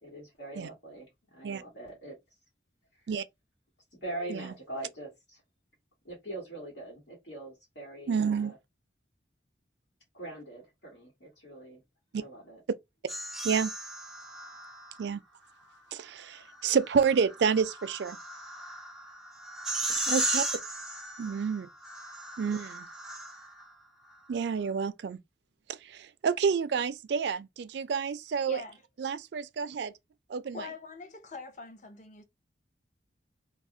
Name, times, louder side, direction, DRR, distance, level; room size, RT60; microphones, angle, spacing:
voice 1, 0.0-2.2 3.9-5.4 6.0-8.6 10.1-11.8 12.2-12.6, right 1 dB, 80° left, 1.3 m, -42 dB
voice 2, 8.1-8.5 12.1-12.2 13.4-13.7 15.0-15.2 15.9-18.2 20.1-20.4 21.2-21.7 22.4-22.9 24.3-25.2 25.7-28.6 29.0-29.9 30.3-30.6, right 6 dB, 65° right, 0.4 m, -29 dB
sound 1, 13.1-15.0 16.5-23.7, right 1 dB, ahead, 0.5 m, -36 dB
voice 3, 28.5-28.8 30.5-32.2, left 3 dB, 40° left, 0.6 m, -43 dB
2.4 x 2.0 x 3.7 m
head